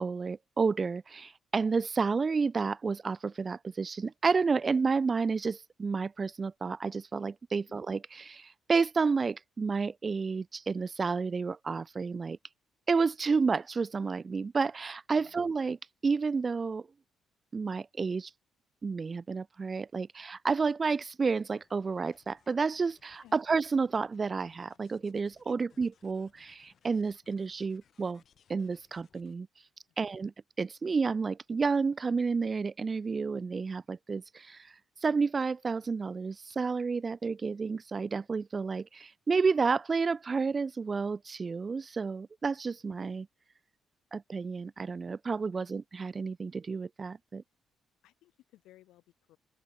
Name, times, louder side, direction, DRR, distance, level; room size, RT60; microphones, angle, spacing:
voice 1, 0.0-12.4 12.9-15.8 16.0-16.9 17.5-18.3 18.8-28.2 28.5-29.5 30.0-34.7 35.0-43.3 44.1-47.4, right 4 dB, 35° right, 0.4 m, -30 dB
voice 2, 15.2-15.5 23.2-23.4 25.4-25.5 30.0-30.1 45.5-45.6 48.0-49.4, left 15 dB, 90° left, 5.8 m, -60 dB
sound 1, 21.5-29.4, left 8 dB, 60° left, 5.4 m, -68 dB
open air
cardioid pair, 90°, 0 cm